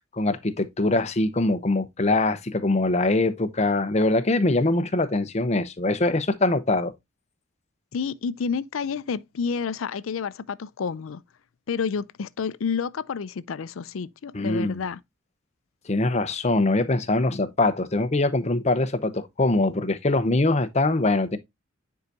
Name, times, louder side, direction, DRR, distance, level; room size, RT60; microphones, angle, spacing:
voice 1, 0.1-6.9 14.3-14.8 15.9-21.4, left 2 dB, 35° left, 0.8 m, -23 dB
voice 2, 7.9-11.2 11.7-15.0, left 6 dB, 85° left, 0.5 m, -29 dB
9.5 x 4.7 x 2.6 m
head